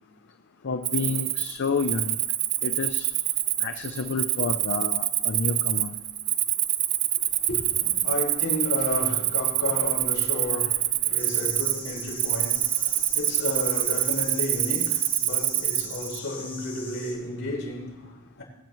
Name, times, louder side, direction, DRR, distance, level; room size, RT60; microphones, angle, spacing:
voice 1, 0.6-2.2 2.6-3.1 3.6-5.9, left 4 dB, 50° left, 0.5 m, -29 dB
Cricket, 0.8-16.2, right 14 dB, 65° right, 0.5 m, -26 dB
voice 2, 7.2-18.4, left 2 dB, 65° left, 4.6 m, -33 dB
sound 1, 11.2-17.1, left 2 dB, 10° left, 4.0 m, -41 dB
21.0 x 9.0 x 3.1 m
head